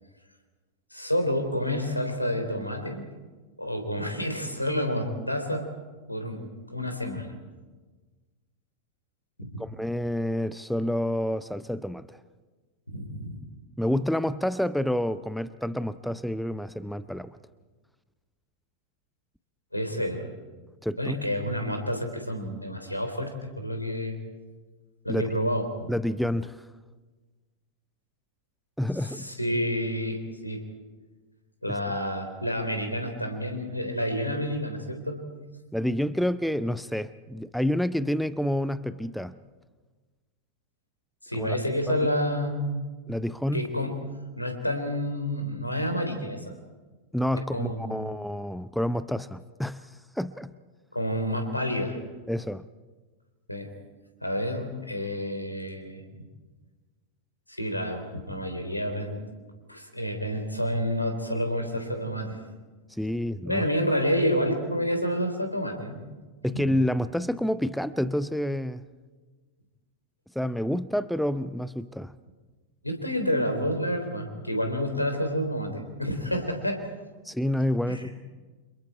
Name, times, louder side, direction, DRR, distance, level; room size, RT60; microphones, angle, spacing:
voice 1, 0.9-3.0 3.6-5.7 6.1-7.3 9.4-9.6 12.9-13.3 19.7-20.3 21.0-24.2 25.0-25.9 29.0-30.6 31.6-35.3 41.2-42.7 43.5-44.0 44.4-46.5 47.5-48.0 50.9-52.0 53.5-53.7 54.2-56.0 57.5-59.2 59.7-62.4 63.5-66.1 72.8-76.8 77.9-78.1, equal, 85° left, 5 dB, 3.5 m, -29 dB
voice 2, 9.6-12.2 13.8-17.4 20.8-21.2 25.1-25.3 25.9-26.6 28.8-29.3 31.9-32.0 35.7-39.3 41.4-41.6 43.1-43.7 47.1-49.8 50.2-50.5 52.3-52.6 63.0-63.7 66.4-68.8 70.4-72.1 77.2-78.1, left 1 dB, ahead, 15 dB, 0.6 m, -28 dB
29.5 x 27.0 x 4.6 m, 1.3 s
figure-of-eight pair, 90°, 0 cm